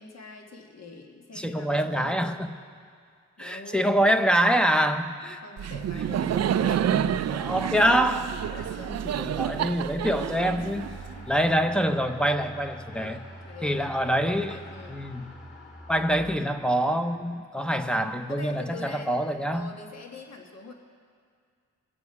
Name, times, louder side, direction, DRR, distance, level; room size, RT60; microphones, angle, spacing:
voice 1, 0.0-2.5 3.4-3.9 5.4-7.4 8.5-9.4 10.5-10.8 11.2-11.4 12.9-15.0 18.3-19.2 19.5-20.7, left 3 dB, 60° left, 2 dB, 1.7 m, -44 dB
voice 2, 1.3-2.5 3.4-5.4 7.3-8.4 9.0-10.9 11.3-13.2 13.6-14.6 14.9-15.3 15.9-19.7, equal, 5° left, 7 dB, 0.8 m, -25 dB
Laughter, 5.6-11.4, right 9 dB, 60° right, 0.5 m, -28 dB
sound 1, 10.6-18.7, equal, 35° left, 3.2 m, -46 dB
21.5 x 7.7 x 4.8 m, 2.2 s
cardioid pair, 70°, 30 cm